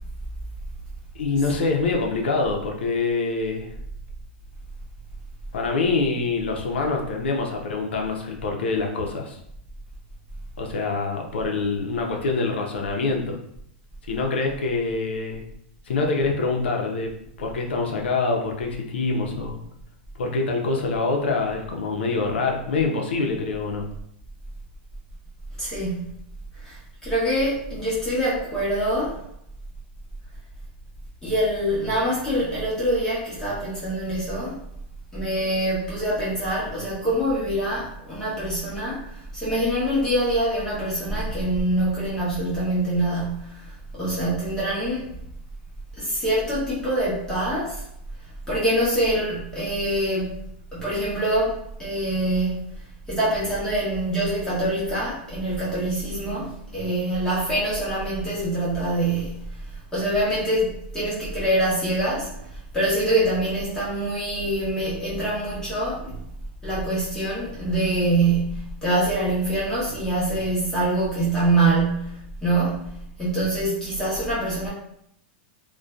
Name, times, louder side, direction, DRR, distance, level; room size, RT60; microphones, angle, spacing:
voice 1, 1.2-3.7 5.5-9.4 10.6-13.4 14.1-15.4 15.9-17.1 17.4-19.6 20.2-23.9, left 3 dB, 90° left, 1 dB, 0.5 m, -25 dB
voice 2, 25.6-26.1 26.6-29.2 31.2-34.6 35.1-39.0 39.3-45.0 46.0-47.8 48.5-50.4 50.7-52.6 53.1-59.4 59.9-62.4 62.7-66.2 66.6-74.7, right 1 dB, 10° left, -9 dB, 0.8 m, -25 dB
2.5 x 2.2 x 2.2 m, 0.74 s
supercardioid pair, 140°, 6 cm